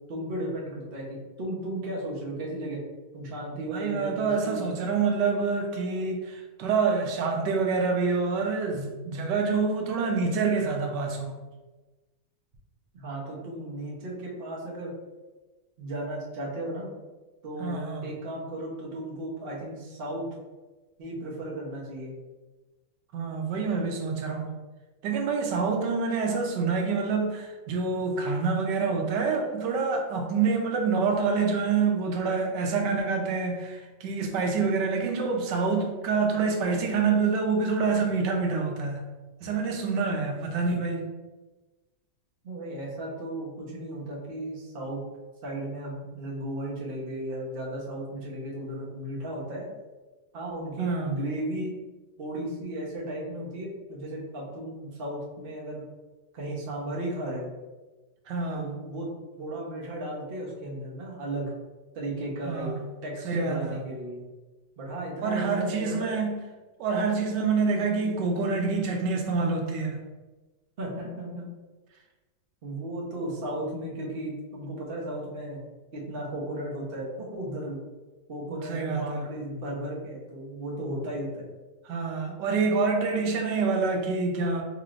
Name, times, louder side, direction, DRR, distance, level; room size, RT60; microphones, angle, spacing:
voice 1, 0.1-2.8 3.1-4.7 12.9-14.9 15.8-16.9 17.4-20.2 21.0-22.1 42.4-45.0 45.4-49.7 50.3-51.7 52.2-55.8 56.3-57.5 58.5-59.1 59.4-61.5 61.9-62.7 63.0-64.2 64.8-66.2 70.8-71.4 72.6-75.6 75.9-77.8 78.3-81.5, right 1 dB, 45° right, -3 dB, 0.8 m, -35 dB
voice 2, 3.7-11.4 17.6-18.1 23.1-24.5 25.0-39.0 39.4-41.1 50.8-51.1 58.3-58.7 62.4-62.8 63.2-63.8 65.2-66.4 66.8-70.0 78.5-79.2 81.9-84.6, right 4 dB, 80° right, 2 dB, 1.2 m, -27 dB
3.9 x 3.1 x 2.5 m, 1.2 s
omnidirectional pair, 1.9 m